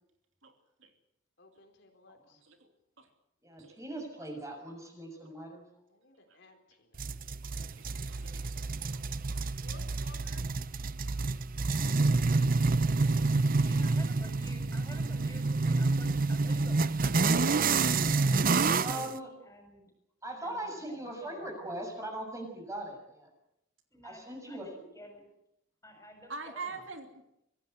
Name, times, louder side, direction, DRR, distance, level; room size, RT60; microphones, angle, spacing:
voice 1, 1.4-2.4 5.9-8.7 9.6-10.5 12.6-13.6, left 2 dB, 60° left, 4 dB, 4.0 m, -59 dB
voice 2, 3.4-5.6 18.8-19.3 20.2-23.3 24.0-24.7, right 1 dB, 15° right, 3 dB, 6.6 m, -40 dB
sound 1, 7.0-19.1, right 3 dB, 45° right, 0.7 m, -28 dB
voice 3, 7.6-8.6 8.9-9.4 26.3-27.2, right 4 dB, 70° right, 5 dB, 3.0 m, -45 dB
voice 4, 13.6-16.8 17.2-17.6 18.6-19.9 20.4-21.6 23.9-25.3 25.8-26.7, equal, 15° left, 4 dB, 6.7 m, -51 dB
24.5 x 16.5 x 8.0 m, 0.83 s
head